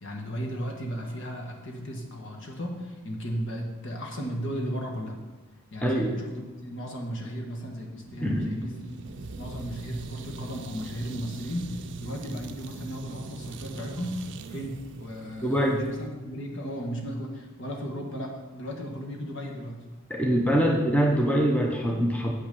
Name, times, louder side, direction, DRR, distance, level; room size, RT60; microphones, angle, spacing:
voice 1, 0.0-5.2 5.7-8.9 9.4-19.8 20.6-20.7, equal, 55° left, 1 dB, 1.6 m, -35 dB
voice 2, 5.8-6.1 8.2-8.5 15.4-15.8 20.1-22.3, equal, 5° left, 0 dB, 0.8 m, -24 dB
sound 1, 8.1-16.1, right 3 dB, 55° right, 0.5 m, -41 dB
8.2 x 5.9 x 6.9 m, 1.3 s
head